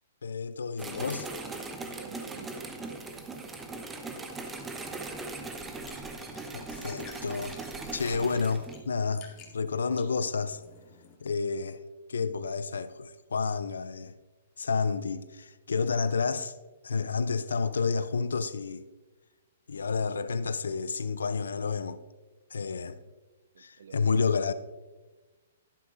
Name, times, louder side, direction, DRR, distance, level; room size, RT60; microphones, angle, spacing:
voice 1, 0.2-1.3 6.5-7.6 7.9-9.3 9.5-10.6 11.2-11.8 12.1-14.1 14.6-16.5 16.8-18.8 19.7-22.0 22.5-23.0 23.6-24.5, left 5 dB, 80° left, 0.5 m, -30 dB
sound 1, 0.8-8.8, right 3 dB, 10° right, 1.0 m, -39 dB
voice 2, 2.0-3.6 23.6-24.0, right 7 dB, 70° right, 0.3 m, -50 dB
sound 2, 5.3-11.1, left 6 dB, 35° left, 2.2 m, -53 dB
11.0 x 11.0 x 2.6 m
hypercardioid pair, 125°, 0 cm